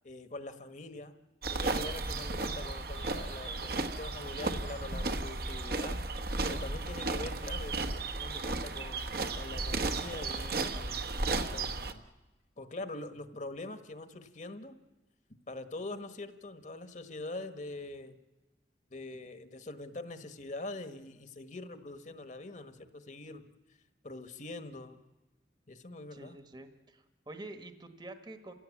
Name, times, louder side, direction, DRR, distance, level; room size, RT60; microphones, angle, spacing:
voice 1, 0.0-1.1 1.5-6.0 6.5-11.0 11.3-12.0 12.6-14.8 15.5-18.2 18.9-23.4 24.0-25.0 25.7-26.4, left 2 dB, 45° left, 9 dB, 1.3 m, -44 dB
sound 1, 1.4-11.9, right 3 dB, 60° right, 1.2 m, -34 dB
voice 2, 1.9-2.2 26.1-28.5, right 2 dB, 25° right, 8 dB, 1.3 m, -48 dB
29.5 x 16.5 x 8.4 m, 1.1 s
head